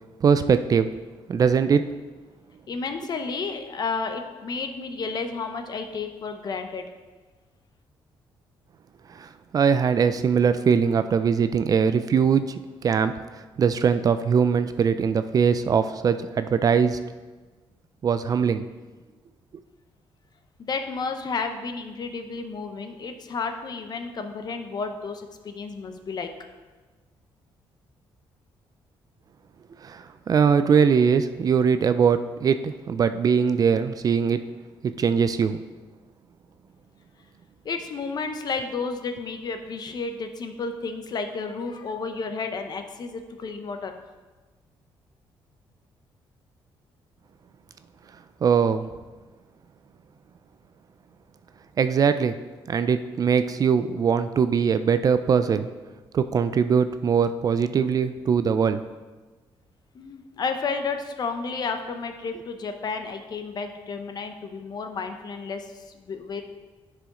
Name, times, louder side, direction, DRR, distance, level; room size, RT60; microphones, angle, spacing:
voice 1, 0.2-0.9 1.3-1.9 9.1-13.1 13.6-17.0 18.0-18.6 29.8-34.4 34.8-35.6 48.4-48.9 51.8-52.4 52.7-55.7 56.1-58.8, right 6 dB, 40° right, 11 dB, 0.3 m, -21 dB
voice 2, 2.7-6.8 20.6-26.3 37.6-43.9 60.0-65.6 66.1-66.4, left 4 dB, 45° left, 6 dB, 0.8 m, -32 dB
9.8 x 4.9 x 3.8 m, 1.3 s
cardioid pair, 115°, 9 cm